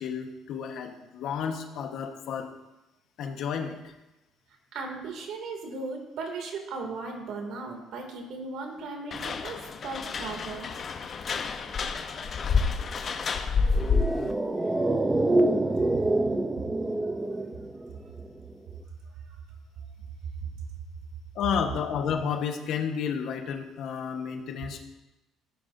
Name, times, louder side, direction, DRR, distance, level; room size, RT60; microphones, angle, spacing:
voice 1, 0.0-2.5 3.2-3.9 13.7-14.4 21.3-24.8, left 7 dB, 65° left, 5 dB, 1.3 m, -32 dB
voice 2, 4.7-10.7 19.8-19.9, right 3 dB, 70° right, 2 dB, 2.6 m, -37 dB
sound 1, 9.1-14.3, left 5 dB, 40° left, 0.8 m, -29 dB
sound 2, 13.7-18.3 18.5-18.6, right 2 dB, 10° right, 0.6 m, -26 dB
15.0 x 10.0 x 2.7 m, 1.0 s
cardioid pair, 125°, 0 cm